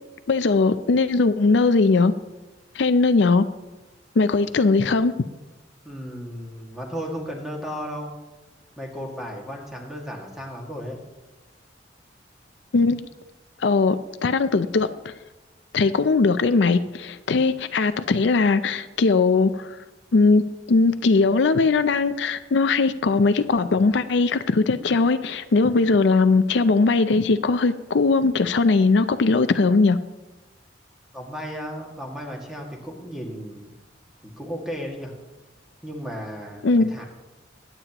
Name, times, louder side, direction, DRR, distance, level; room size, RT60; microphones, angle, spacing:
voice 1, 0.3-2.1 2.7-3.4 4.2-5.1 12.7-13.0 13.6-14.0 14.2-15.1 15.7-19.8 20.1-20.4 20.7-30.0 36.6-36.9, left 3 dB, 70° left, 11 dB, 0.5 m, -19 dB
voice 2, 5.9-8.1 8.8-11.0 31.1-33.6 34.2-35.1 35.8-37.1, equal, ahead, -1 dB, 2.0 m, -34 dB
22.0 x 9.0 x 3.0 m, 1.1 s
head